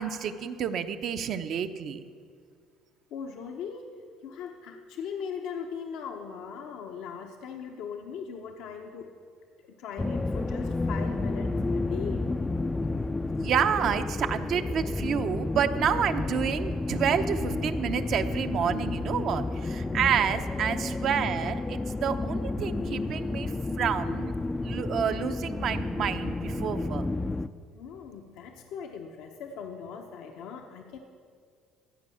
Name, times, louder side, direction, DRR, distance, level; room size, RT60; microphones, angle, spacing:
voice 1, 0.0-2.0 13.4-24.3 24.6-27.1, right 8 dB, 60° right, 9 dB, 0.7 m, -29 dB
voice 2, 3.1-3.9 4.2-9.1 9.6-12.2 27.7-31.0, left 7 dB, 80° left, 2 dB, 0.9 m, -39 dB
sound 1, 10.0-27.5, left 2 dB, 15° left, 0.4 m, -31 dB
15.0 x 5.3 x 8.4 m, 2.1 s
cardioid pair, 100°, 0 cm